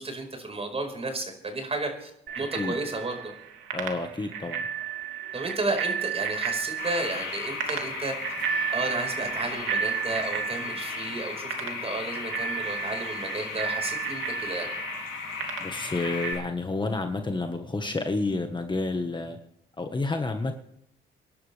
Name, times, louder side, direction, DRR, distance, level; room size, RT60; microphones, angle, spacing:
voice 1, 0.0-2.1 2.3-3.2 5.3-8.1 8.7-14.7, right 2 dB, 30° right, 4 dB, 5.1 m, -32 dB
Bicycle bell, 2.3-16.3, right 8 dB, 85° right, 2.9 m, -33 dB
voice 2, 2.4-2.8 3.7-4.7 15.6-19.4 19.8-20.5, left 3 dB, 25° left, 5 dB, 1.6 m, -30 dB
sound 1, 6.8-16.4, left 5 dB, 90° left, 3.8 m, -36 dB
26.5 x 11.0 x 3.5 m, 0.76 s
cardioid pair, 90°, 20 cm